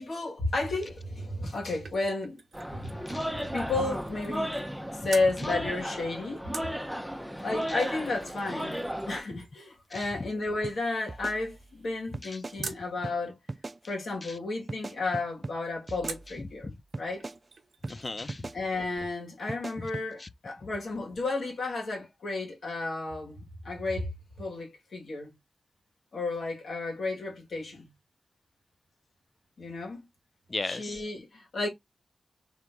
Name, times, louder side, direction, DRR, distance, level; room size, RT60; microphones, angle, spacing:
voice 1, 0.0-2.4 2.7-2.9 3.2-4.5 4.9-6.4 7.4-8.8 9.1-13.3 13.9-17.3 18.5-24.1 24.4-25.3 26.1-27.9 29.6-30.0 30.6-31.7, left 3 dB, 80° left, 2.1 m, -32 dB
sound 1, 1.2-4.8 5.1-5.3 6.5-12.9 16.1-16.4 16.9-17.0 17.2-18.2 18.5-18.6, right 5 dB, 80° right, 0.7 m, -46 dB
sound 2, 2.5-9.2, equal, ahead, 0.8 m, -35 dB
sound 3, 10.6-10.8 11.1-11.8 12.1-12.6 13.0-13.2 13.5-13.8 14.7-15.6 15.9-16.6 16.9-17.4 17.8-18.0 18.3-18.6 19.5-20.1, right 3 dB, 45° right, 0.3 m, -39 dB
voice 2, 12.2-12.7 14.2-14.3 16.6-16.7 17.9-18.5 20.2-20.3 30.5-31.0, left 3 dB, 40° left, 0.5 m, -37 dB
3.5 x 2.9 x 3.8 m
cardioid pair, 60°, 0 cm